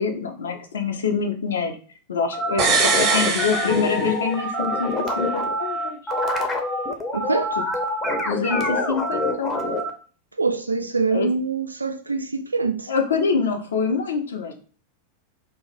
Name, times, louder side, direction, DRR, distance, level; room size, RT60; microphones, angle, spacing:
voice 1, 0.0-1.8 2.1-6.0 8.2-9.6 11.1-11.3 12.9-14.5, left 5 dB, 65° left, 0.5 m, -25 dB
sound 1, 2.3-9.9, left 1 dB, 20° left, 0.6 m, -25 dB
sound 2, 2.6-4.5 4.8-4.9, right 4 dB, 35° right, 0.7 m, -23 dB
voice 2, 7.1-7.6 10.4-12.9, right 4 dB, 80° right, 0.3 m, -24 dB
2.5 x 2.1 x 3.9 m
figure-of-eight pair, 90°, 0 cm